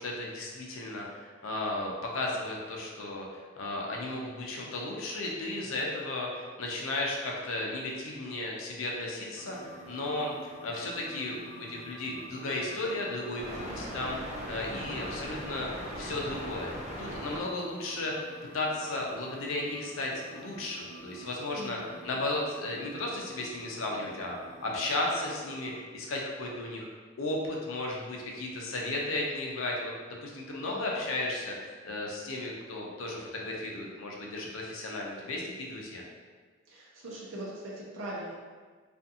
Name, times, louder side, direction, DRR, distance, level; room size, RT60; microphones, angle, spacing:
voice 1, 0.0-14.2 14.5-16.7 17.0-18.3 18.5-21.8 22.0-24.3 24.6-26.9 27.2-29.9 30.2-36.0, left 2 dB, 80° left, -2 dB, 0.5 m, -34 dB
sound 1, 9.4-25.7, equal, 35° right, 0.5 m, -43 dB
voice 2, 14.7-15.2 21.6-22.2 30.7-30.9 36.7-38.3, right 1 dB, 80° right, -5 dB, 0.6 m, -42 dB
2.4 x 2.4 x 2.7 m, 1.5 s
head